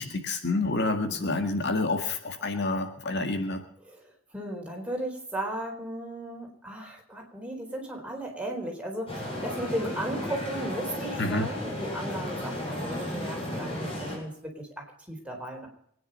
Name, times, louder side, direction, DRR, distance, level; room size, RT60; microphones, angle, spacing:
voice 1, 0.0-3.6 11.2-11.5, left 2 dB, 55° left, 6 dB, 1.8 m, -28 dB
voice 2, 4.3-15.7, right 1 dB, 5° right, 0 dB, 4.2 m, -35 dB
sound 1, 9.1-14.2, left 1 dB, 30° left, 7.8 m, -34 dB
24.0 x 9.9 x 5.4 m, 0.68 s
head